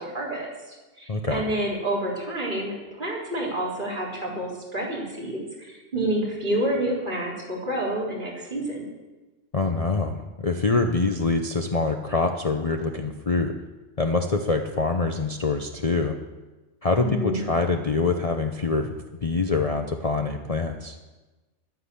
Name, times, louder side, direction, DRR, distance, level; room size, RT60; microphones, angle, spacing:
voice 1, 0.0-8.9 17.0-17.4, right 1 dB, 40° right, -5 dB, 4.3 m, -29 dB
voice 2, 1.1-1.4 9.5-13.5 14.0-16.2 16.8-18.9 19.2-21.0, left 3 dB, 35° left, 4 dB, 0.8 m, -25 dB
12.0 x 9.7 x 8.5 m, 1.2 s
omnidirectional pair, 1.3 m